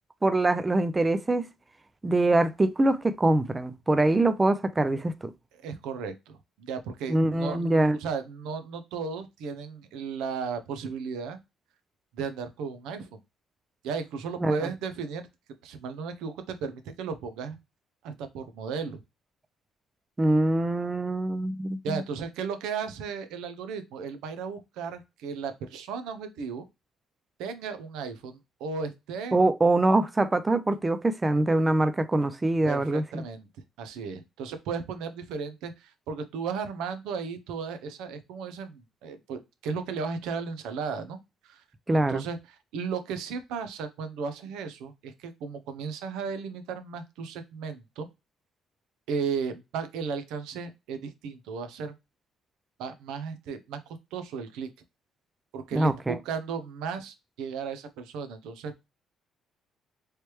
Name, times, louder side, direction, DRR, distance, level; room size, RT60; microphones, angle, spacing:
voice 1, 0.2-1.5 2.0-5.3 7.1-8.0 14.4-14.6 20.2-22.0 29.3-33.2 41.9-42.2 55.7-56.2, right 2 dB, 20° right, 0.3 m, -24 dB
voice 2, 5.6-11.4 12.1-13.2 13.8-15.3 15.6-17.6 18.0-19.0 21.8-26.6 27.4-29.4 32.6-33.5 33.8-41.2 41.4-41.6 41.9-42.4 42.7-48.1 49.1-51.9 52.8-53.8 54.1-54.7 55.5-58.9, right 5 dB, 90° right, 0.6 m, -35 dB
3.2 x 3.1 x 3.0 m
cardioid pair, 95°, 0 cm